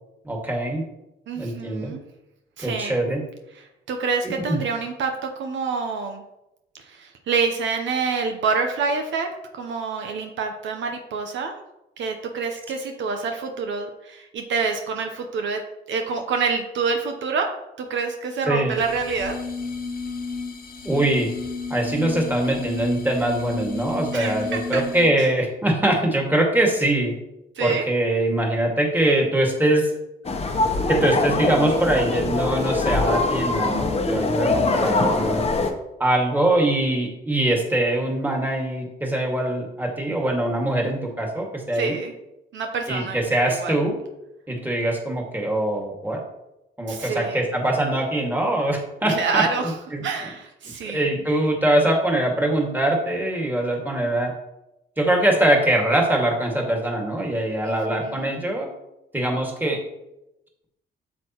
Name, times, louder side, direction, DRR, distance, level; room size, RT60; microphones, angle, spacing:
voice 1, 0.2-0.8 1.4-1.9 2.6-3.2 4.5-4.6 18.5-18.8 20.8-21.3 21.7-27.1 27.6-29.9 30.9-35.5 36.0-42.0 42.9-43.9 44.5-46.2 46.8-50.3 50.8-54.3 55.0-58.7 59.1-59.8, right 1 dB, 10° right, 0 dB, 2.0 m, -23 dB
voice 2, 1.3-2.0 2.6-3.0 3.9-6.2 6.9-9.3 9.5-11.5 12.0-15.6 15.9-17.5 17.8-19.4 24.1-24.8 25.2-25.3 27.6-27.9 41.7-42.1 42.5-43.2 43.5-43.8 46.9-47.5 49.1-49.7 50.0-51.1 57.6-58.4, right 5 dB, 70° right, 4 dB, 0.9 m, -27 dB
sound 1, 18.7-25.3, left 4 dB, 50° left, 1.3 m, -32 dB
sound 2, 30.2-35.7, left 3 dB, 30° left, 1.0 m, -23 dB
8.2 x 6.5 x 3.0 m, 0.91 s
cardioid pair, 90°, 20 cm